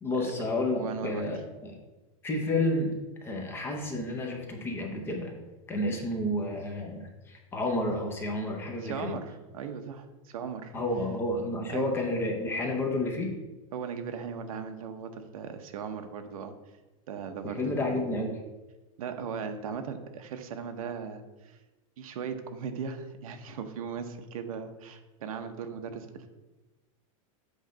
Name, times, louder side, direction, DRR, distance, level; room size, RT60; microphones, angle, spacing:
voice 1, 0.0-1.4 1.6-1.8 2.2-2.9 3.2-5.3 5.7-9.2 10.7-13.3 17.4-18.4, left 1 dB, 10° left, 2 dB, 0.6 m, -30 dB
voice 2, 0.8-1.2 8.8-10.7 11.7-11.9 13.7-16.5 17.1-18.0 19.0-21.6 22.0-26.3, right 6 dB, 85° right, 7 dB, 0.9 m, -38 dB
8.0 x 3.2 x 5.1 m, 1.1 s
supercardioid pair, 175°, 18 cm